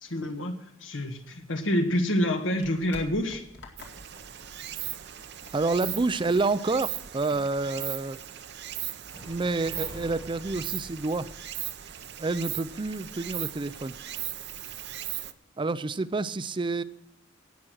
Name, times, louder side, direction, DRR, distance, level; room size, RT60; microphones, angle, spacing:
voice 1, 0.0-0.5 0.8-3.4, left 1 dB, 80° left, 5 dB, 1.7 m, -27 dB
sound 1, 1.2-7.1, left 2 dB, 65° left, 2.2 m, -50 dB
Stream, 3.8-15.3, right 12 dB, 60° right, 0.7 m, -38 dB
voice 2, 5.5-8.2 9.2-11.3 12.2-13.9 15.6-16.8, right 3 dB, 25° right, 15 dB, 0.5 m, -28 dB
sound 2, 9.1-13.0, left 1 dB, 20° left, 1.5 m, -48 dB
17.5 x 6.0 x 6.3 m, 0.79 s
head